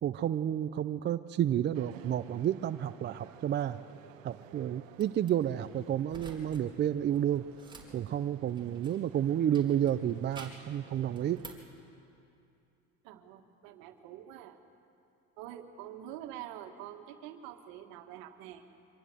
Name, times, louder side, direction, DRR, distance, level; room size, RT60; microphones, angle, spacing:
voice 1, 0.0-3.8 4.2-7.5 7.9-11.4, right 10 dB, 30° right, 11 dB, 0.5 m, -30 dB
sound 1, 1.7-11.6, right 12 dB, 90° right, 1.1 m, -55 dB
sound 2, 5.0-5.3 6.1-6.6 6.9-9.1 9.5-10.7 11.1-11.7, right 3 dB, 10° right, 3.7 m, -51 dB
voice 2, 13.0-14.6 15.4-18.6, right 11 dB, 65° right, 6 dB, 1.9 m, -46 dB
25.0 x 19.0 x 7.9 m, 2.6 s
supercardioid pair, 100°, 38 cm